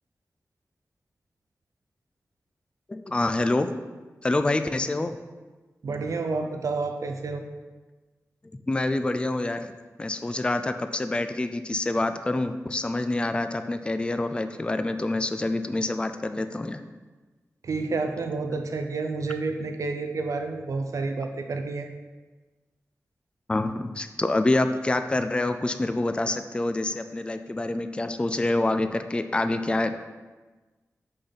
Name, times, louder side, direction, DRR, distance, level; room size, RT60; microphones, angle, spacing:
voice 1, 2.9-3.7 4.2-5.2 8.7-9.7 10.0-16.8 23.5-30.1, left 2 dB, 20° left, 9 dB, 0.3 m, -26 dB
voice 2, 5.8-7.5 17.6-21.9, right 3 dB, 70° right, 5 dB, 0.5 m, -29 dB
6.4 x 5.8 x 4.0 m, 1.3 s
wide cardioid pair, 130°, 6 cm